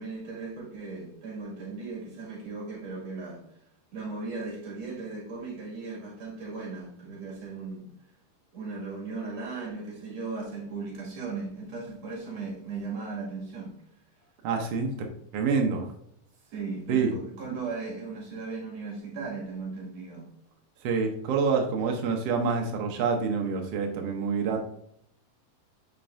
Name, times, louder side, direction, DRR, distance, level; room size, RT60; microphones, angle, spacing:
voice 1, 0.0-3.5 3.9-7.9 8.5-13.8 16.5-20.3, right 4 dB, 50° right, 3.1 m, -37 dB
voice 2, 14.4-14.9 15.3-15.9 16.9-17.1 20.8-24.6, right 5 dB, 80° right, 1.4 m, -27 dB
7.5 x 5.5 x 2.6 m
omnidirectional pair, 4.0 m